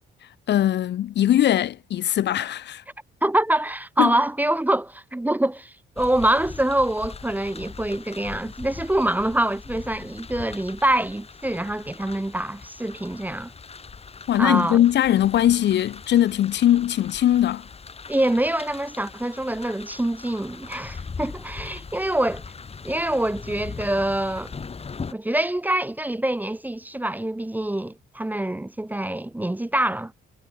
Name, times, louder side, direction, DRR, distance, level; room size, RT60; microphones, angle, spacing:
voice 1, 0.5-2.8 4.0-4.2 14.3-17.7, left 12 dB, 60° left, 0.7 m, -20 dB
voice 2, 3.2-13.5 14.4-14.8 18.1-22.4 22.8-24.5 25.1-30.1, right 1 dB, 10° right, 0.7 m, -25 dB
sound 1, 6.0-25.1, left 5 dB, 30° left, 1.7 m, -40 dB
cardioid pair, 90°, 20 cm